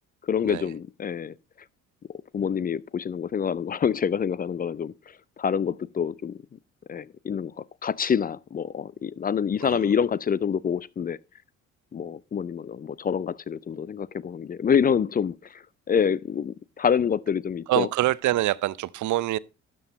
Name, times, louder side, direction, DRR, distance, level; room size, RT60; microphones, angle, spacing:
voice 1, 0.2-1.3 2.3-4.9 5.4-6.4 6.9-11.2 11.9-15.6 15.9-17.9, left 7 dB, 20° left, 0.4 m, -26 dB
voice 2, 17.7-19.4, right 15 dB, 45° right, 0.6 m, -25 dB
12.5 x 7.7 x 4.0 m
figure-of-eight pair, 45°, 41 cm